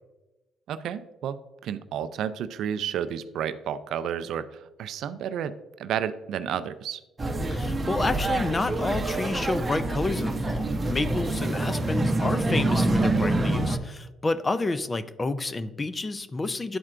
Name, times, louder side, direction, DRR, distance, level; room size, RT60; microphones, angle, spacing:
voice 1, 0.7-1.4 1.6-5.5 5.8-7.0, right 9 dB, 70° right, 13 dB, 0.3 m, -31 dB
sound 1, 7.2-13.8, right 2 dB, 25° right, 0.8 m, -26 dB
voice 2, 7.5-16.8, left 3 dB, 25° left, 13 dB, 0.5 m, -29 dB
11.0 x 4.3 x 2.5 m, 1.1 s
supercardioid pair, 75°, 0 cm